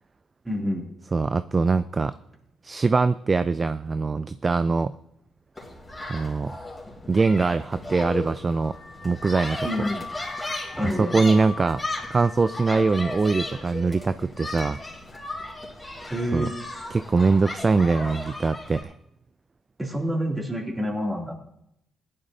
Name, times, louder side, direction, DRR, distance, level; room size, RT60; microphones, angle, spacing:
voice 1, 0.4-0.9 9.6-10.2 10.8-11.1 16.1-16.6 19.8-21.4, equal, 15° right, 0 dB, 2.8 m, -28 dB
voice 2, 1.1-2.1 2.6-5.0 6.1-6.6 7.1-8.7 9.0-9.7 11.0-11.8 12.1-14.8 16.3-16.5 16.9-18.9, right 4 dB, 30° right, 13 dB, 0.3 m, -22 dB
sound 1, 5.6-18.8, left 2 dB, 10° left, 3.4 m, -36 dB
Car / Alarm, 8.3-13.8, left 4 dB, 55° left, 2.5 m, -41 dB
16.0 x 11.0 x 2.8 m, 0.78 s
cardioid pair, 90°, 0 cm